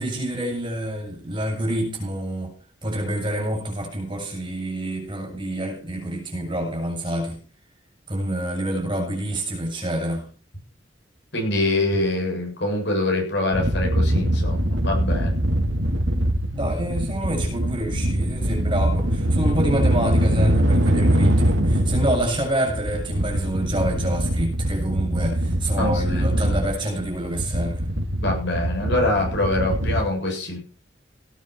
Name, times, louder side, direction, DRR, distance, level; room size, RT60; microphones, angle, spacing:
voice 1, 0.0-2.5 2.8-7.4 8.1-10.3 16.5-27.8, right 1 dB, 25° right, 6.9 m, -27 dB
voice 2, 11.3-15.3 25.8-26.2 28.2-30.6, left 2 dB, 65° left, 7.8 m, -24 dB
sound 1, 13.5-30.0, right 1 dB, 80° right, 2.6 m, -23 dB
18.0 x 10.0 x 4.6 m
head